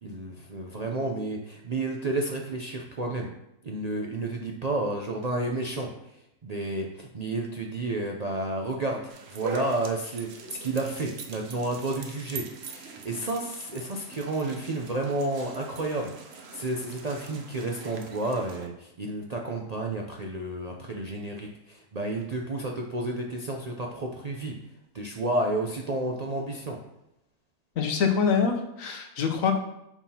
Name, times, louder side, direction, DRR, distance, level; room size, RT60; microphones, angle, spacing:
voice 1, 0.0-3.3 3.6-9.0 9.3-24.5 24.9-26.8, right 2 dB, 70° right, 0 dB, 0.3 m, -31 dB
sound 1, 9.1-18.7, right 4 dB, 55° right, 0.9 m, -42 dB
voice 2, 27.8-29.5, left 6 dB, 70° left, 5 dB, 1.1 m, -25 dB
7.1 x 5.5 x 2.8 m, 0.85 s
omnidirectional pair, 1.5 m